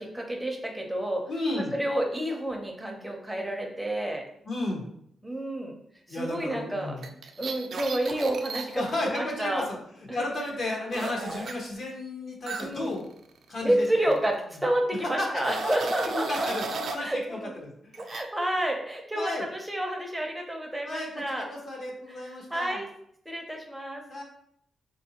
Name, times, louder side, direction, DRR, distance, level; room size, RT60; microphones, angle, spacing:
voice 1, 0.0-1.2 1.7-4.2 5.2-5.8 6.1-7.0 7.4-9.7 10.1-10.2 12.6-12.9 13.6-16.7 17.0-17.5 18.0-21.5 22.5-22.9 23.3-24.0, right 1 dB, 5° right, 1 dB, 0.6 m, -29 dB
voice 2, 1.3-1.7 4.4-4.9 6.1-7.1 8.7-9.8 10.1-13.0 13.5-14.2 14.5-14.6 14.9-15.7 16.0-18.0 19.1-19.5 20.8-22.8 24.1-24.2, left 2 dB, 50° left, -1 dB, 0.8 m, -33 dB
sound 1, 7.0-9.0 10.9-11.5 12.5-13.9 14.1-14.3 15.2-17.0 17.9-18.2, right 3 dB, 60° right, 0.4 m, -35 dB
3.6 x 2.6 x 2.8 m, 0.68 s
wide cardioid pair, 140°, 0 cm